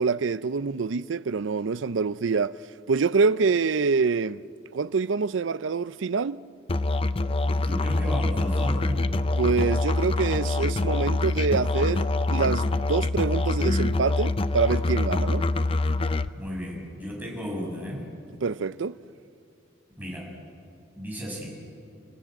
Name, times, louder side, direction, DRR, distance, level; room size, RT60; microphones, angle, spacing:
voice 1, 0.0-2.6 2.9-4.4 4.7-6.4 9.4-15.5 18.4-19.0, right 4 dB, 70° right, 0.5 m, -25 dB
Musical instrument, 6.7-16.3, left 2 dB, 30° left, 0.6 m, -25 dB
voice 2, 7.4-9.1 16.3-18.1 20.0-20.3 21.0-21.5, equal, 10° right, 6.5 m, -34 dB
29.5 x 16.5 x 8.8 m
head